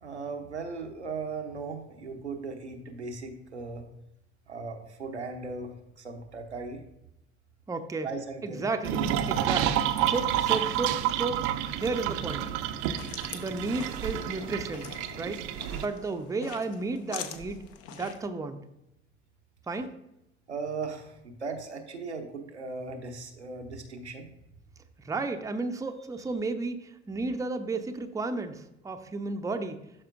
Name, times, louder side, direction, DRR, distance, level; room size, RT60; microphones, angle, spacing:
voice 1, 0.0-3.8 4.5-6.8 8.0-8.7 20.5-24.3, right 4 dB, 85° right, 4 dB, 0.9 m, -38 dB
voice 2, 7.7-8.1 8.4-11.5 11.8-12.5 13.3-15.4 15.7-17.6 17.9-18.6 19.7-19.9 25.0-29.8, right 3 dB, 10° right, 7 dB, 0.6 m, -33 dB
sound 1, 8.8-15.9, right 11 dB, 50° right, 0.6 m, -29 dB
sound 2, 12.6-18.3, left 8 dB, 45° left, 0.8 m, -44 dB
12.0 x 4.3 x 2.5 m, 0.83 s
figure-of-eight pair, 60°, 33 cm